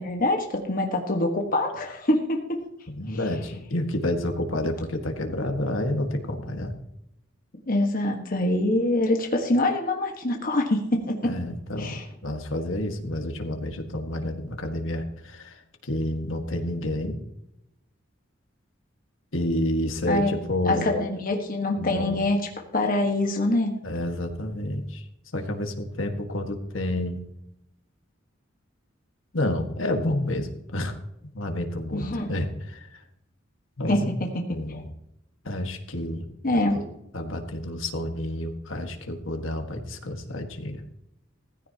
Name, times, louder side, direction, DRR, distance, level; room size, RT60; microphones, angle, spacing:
voice 1, 0.0-2.6 7.7-11.3 11.8-12.0 20.0-20.3 20.7-22.4 22.7-23.7 31.9-32.3 33.9-34.8 36.4-36.9, left 1 dB, 45° left, 2 dB, 1.5 m, -25 dB
voice 2, 2.9-6.7 11.2-17.2 19.3-20.9 21.7-22.2 23.8-25.0 25.3-27.2 29.3-31.0 31.3-32.8 33.8-34.1 34.5-34.9 35.4-36.2 37.1-40.8, left 1 dB, 75° left, 4 dB, 1.7 m, -29 dB
17.0 x 15.0 x 2.9 m, 0.83 s
head